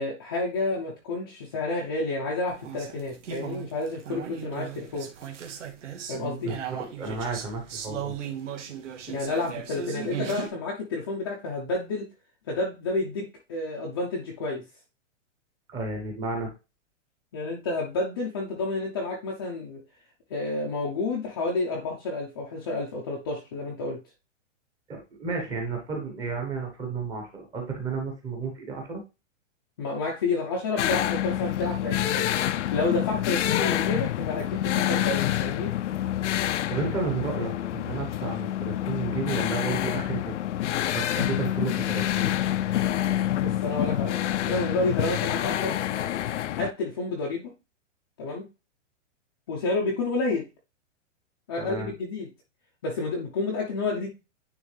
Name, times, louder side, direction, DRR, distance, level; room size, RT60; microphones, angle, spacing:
voice 1, 0.0-5.1 6.1-6.5 9.1-12.1 12.5-14.6 17.3-19.8 20.3-24.0 29.8-32.3 32.5-35.7 43.4-44.2 44.5-45.8 46.6-47.5 48.2-48.5 49.5-50.4 51.5-52.3 52.8-54.1, left 3 dB, 20° left, 0.5 m, -30 dB
sound 1, 2.5-10.5, right 8 dB, 70° right, 1.6 m, -37 dB
voice 2, 6.4-8.1 15.7-16.5 24.9-29.0 36.5-40.3 40.9-42.3 51.6-51.9, right 4 dB, 10° right, 0.9 m, -32 dB
sound 2, 30.8-46.7, left 12 dB, 65° left, 0.6 m, -27 dB
9.7 x 3.2 x 3.2 m
hypercardioid pair, 175°, 38 cm